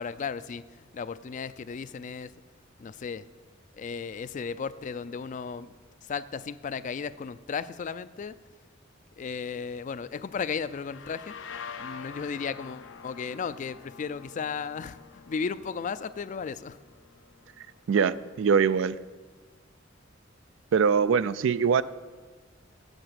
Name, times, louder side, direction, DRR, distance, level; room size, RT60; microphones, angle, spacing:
voice 1, 0.0-2.3 2.8-3.3 3.8-5.7 6.0-8.3 9.2-16.8, left 6 dB, 40° left, 15 dB, 0.3 m, -35 dB
sound 1, 10.6-18.2, left 6 dB, 85° left, 0.7 m, -46 dB
voice 2, 17.9-19.0 20.7-21.8, right 6 dB, 80° right, 16 dB, 0.4 m, -23 dB
8.0 x 7.0 x 7.4 m, 1.4 s
head